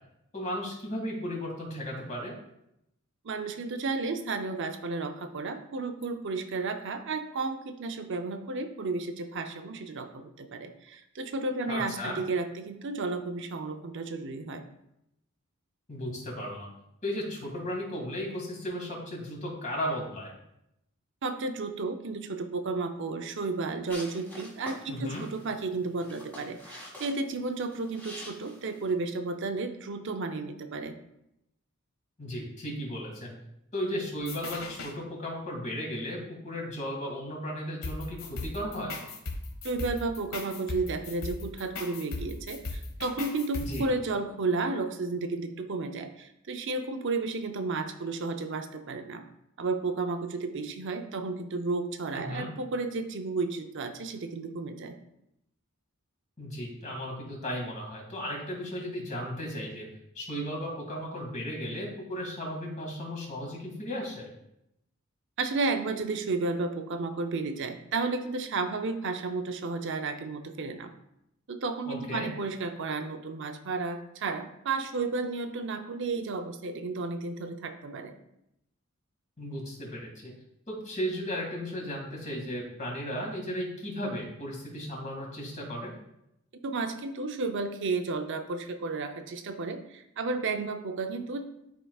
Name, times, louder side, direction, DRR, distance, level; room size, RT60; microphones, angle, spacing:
voice 1, 0.3-2.3 11.7-12.2 15.9-16.7 17.0-20.3 24.9-25.3 32.2-33.4 33.7-39.0 43.6-43.9 52.1-52.5 56.4-59.9 60.1-64.3 71.9-72.3 79.4-80.3 80.7-85.9, equal, 35° left, -1 dB, 2.0 m, -35 dB
voice 2, 3.2-14.6 21.2-31.0 39.6-49.2 49.6-55.0 65.4-70.9 71.5-78.1 86.6-91.4, right 3 dB, 60° right, 7 dB, 0.6 m, -32 dB
sound 1, 23.9-28.9, left 1 dB, 10° left, 1.7 m, -46 dB
sound 2, 34.2-34.9 37.8-43.8, left 3 dB, 70° left, 1.3 m, -37 dB
11.0 x 4.7 x 2.3 m, 0.81 s
head